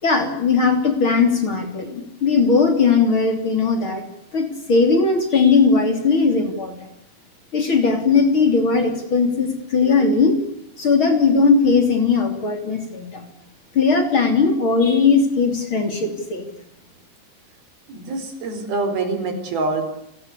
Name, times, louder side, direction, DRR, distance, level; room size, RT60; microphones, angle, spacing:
voice 1, 0.0-4.0 4.3-6.9 7.5-10.4 10.8-13.2 13.7-16.4, left 4 dB, 35° left, 6 dB, 3.7 m, -18 dB
voice 2, 17.9-19.9, right 3 dB, 80° right, 7 dB, 6.4 m, -25 dB
29.5 x 20.0 x 8.3 m, 0.76 s
omnidirectional pair, 4.3 m